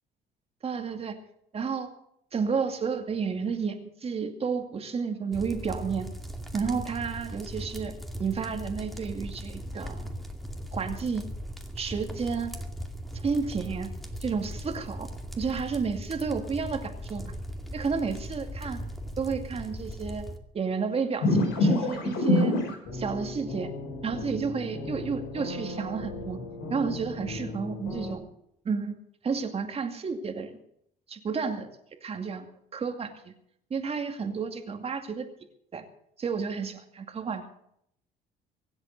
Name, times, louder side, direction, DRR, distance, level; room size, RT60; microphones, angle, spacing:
voice 1, 0.6-1.2 1.5-1.9 2.3-6.1 6.5-7.9 8.2-10.1 10.7-11.3 11.8-12.5 13.1-13.9 14.2-15.1 15.4-17.3 17.7-18.8 19.2-20.3 20.5-22.6 22.9-23.7 24.0-26.4 26.7-28.2 28.6-28.9 29.2-30.5 31.1-31.7 32.0-32.5 32.7-33.3 33.7-35.3 35.7-35.8 36.2-37.4, right 5 dB, 35° right, 5 dB, 2.4 m, -31 dB
sound 1, 5.3-20.4, equal, ahead, 2.4 m, -38 dB
sound 2, 21.2-28.2, left 2 dB, 90° left, 5.2 m, -29 dB
24.0 x 8.1 x 6.6 m, 0.72 s
cardioid pair, 110°, 17 cm